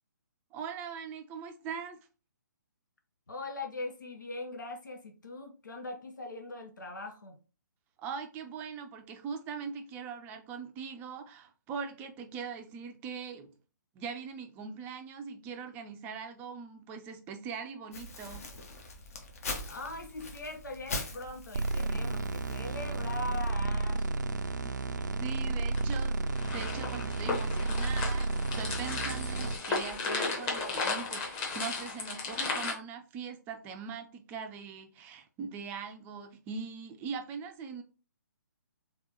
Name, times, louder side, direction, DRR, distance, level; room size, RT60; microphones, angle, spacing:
voice 1, 0.5-2.0 8.0-13.5 13.9-18.5 25.2-26.2 26.5-37.8, right 6 dB, 15° right, 0.5 m, -41 dB
voice 2, 3.3-7.4 19.6-24.1, left 2 dB, 75° left, 0.8 m, -41 dB
Crumpling crinkling, 17.9-23.5, left 2 dB, 50° left, 1.1 m, -42 dB
sound 1, 21.5-29.5, right 2 dB, 70° right, 0.5 m, -32 dB
sound 2, 25.7-32.7, left 3 dB, 25° left, 1.1 m, -35 dB
3.6 x 3.5 x 2.8 m
figure-of-eight pair, 135°, 10 cm